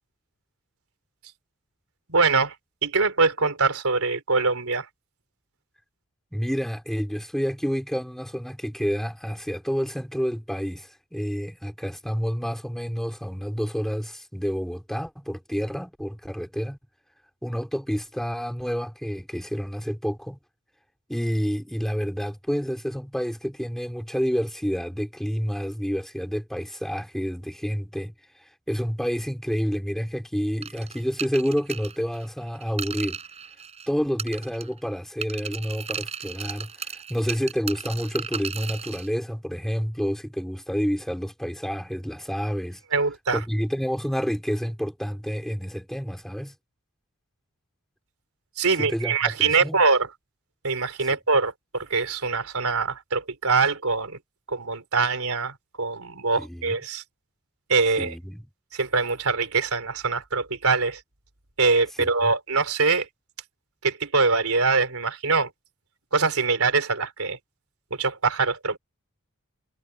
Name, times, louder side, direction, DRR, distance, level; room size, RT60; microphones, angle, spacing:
voice 1, 2.1-2.5 2.8-4.9 42.9-43.4 48.6-50.1 50.6-54.2 54.5-57.0 57.7-58.1 58.7-61.0 61.6-63.1 63.8-65.5 66.1-67.4 68.0-68.8, right 4 dB, 75° right, 3.7 m, -23 dB
voice 2, 6.3-16.8 17.4-20.4 21.1-28.1 28.7-33.2 33.9-42.8 43.3-46.5 48.8-49.8 56.4-56.8 58.0-58.5 62.0-62.3, equal, ahead, 4.4 m, -29 dB
sound 1, 30.6-33.9 34.2-34.9 35.2-39.1, right 7 dB, 30° right, 4.8 m, -35 dB
head